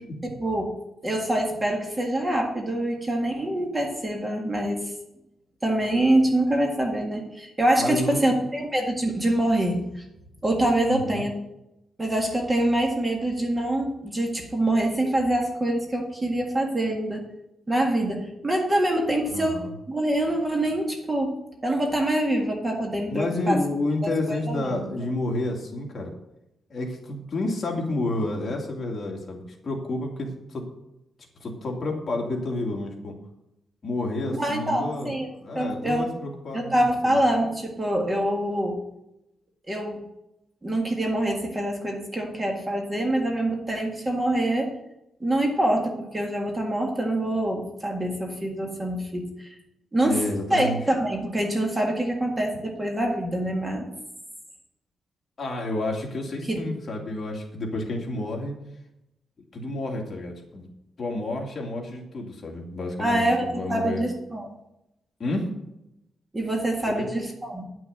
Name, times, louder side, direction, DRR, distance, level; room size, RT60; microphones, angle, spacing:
voice 1, 0.2-0.7 1.0-4.9 5.6-10.0 10.4-11.3 12.0-17.2 17.7-21.4 21.6-23.6 24.3-24.9 34.3-35.3 35.6-36.1 36.5-38.8 39.7-40.0 40.6-44.7 45.2-49.6 49.9-50.3 50.5-53.9 56.5-56.7 63.0-64.5 66.3-67.7, right 1 dB, 15° right, 1 dB, 1.8 m, -25 dB
voice 2, 7.8-8.3 10.9-11.2 19.3-19.7 23.1-26.1 26.7-30.7 31.4-33.2 33.8-37.2 50.0-50.8 55.4-58.5 59.5-60.7 61.0-64.0 65.2-65.5 66.9-67.1, left 2 dB, 40° left, 0 dB, 2.4 m, -30 dB
10.5 x 6.2 x 7.9 m, 0.88 s
wide cardioid pair, 165°, 0 cm